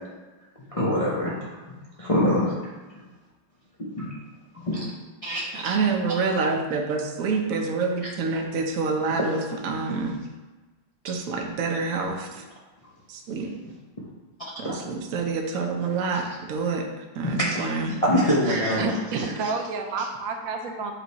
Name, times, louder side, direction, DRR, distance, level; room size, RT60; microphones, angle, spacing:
voice 1, 0.7-2.6 3.8-4.1 4.5-4.8 5.2-5.8 9.2-9.4 14.6-14.8 16.1-16.3 17.2-18.9, equal, 45° left, -5 dB, 0.4 m, -25 dB
voice 2, 5.5-10.2 11.0-12.4 13.1-13.5 14.6-16.8 17.2-17.9, right 4 dB, 60° right, 1 dB, 1.0 m, -27 dB
voice 3, 18.4-20.9, right 4 dB, 80° right, 3 dB, 1.5 m, -30 dB
7.5 x 3.4 x 4.1 m, 1.2 s
omnidirectional pair, 2.1 m